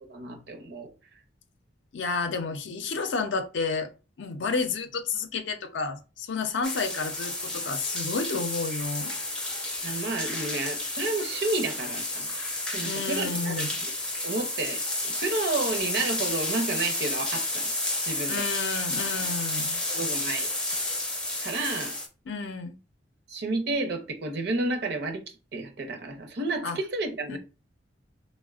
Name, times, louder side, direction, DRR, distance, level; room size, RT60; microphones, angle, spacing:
voice 1, 0.0-0.9 9.8-12.3 12.7-13.9 14.2-17.7 18.1-18.5 19.9-20.5 21.4-22.0 23.3-25.2 25.5-27.4, right 3 dB, 60° right, 0.6 m, -31 dB
voice 2, 1.9-3.9 4.2-9.1 12.8-13.8 18.3-19.8 22.3-22.8 26.6-26.8 27.3-27.4, left 4 dB, 75° left, 0.5 m, -31 dB
sound 1, 6.6-22.1, left 2 dB, 5° left, 0.4 m, -31 dB
4.0 x 2.1 x 2.3 m
head